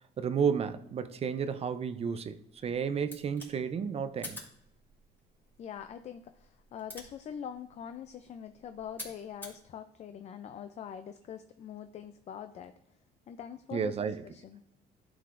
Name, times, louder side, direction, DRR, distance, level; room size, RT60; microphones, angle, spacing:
voice 1, 0.2-4.4 13.7-14.2, right 7 dB, 35° right, 0.5 m, -32 dB
sound 1, 3.0-9.6, left 1 dB, 10° left, 2.6 m, -50 dB
voice 2, 5.6-12.7 13.3-13.9 14.2-14.6, left 8 dB, 40° left, 0.4 m, -43 dB
11.5 x 4.7 x 2.5 m
cardioid pair, 110°, 17 cm